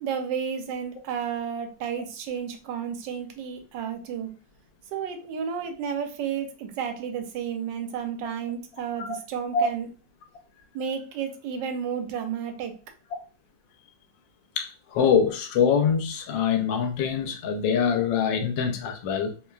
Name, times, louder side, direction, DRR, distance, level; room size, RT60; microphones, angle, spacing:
voice 1, 0.0-4.3 4.9-9.9 10.7-12.7, right 7 dB, 85° right, 1.3 m, -32 dB
voice 2, 14.6-19.3, left 6 dB, 85° left, 1.3 m, -24 dB
3.2 x 2.2 x 2.3 m
omnidirectional pair, 2.0 m